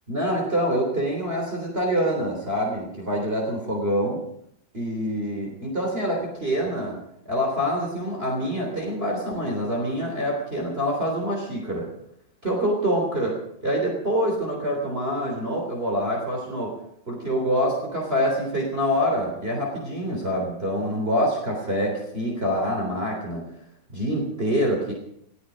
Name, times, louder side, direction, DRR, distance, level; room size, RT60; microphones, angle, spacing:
voice 1, 0.1-4.2 4.7-7.0 7.3-11.9 12.4-16.7 17.1-23.4 23.9-24.9, equal, 30° right, -1 dB, 3.7 m, -26 dB
19.5 x 14.0 x 5.1 m, 0.74 s
omnidirectional pair, 2.1 m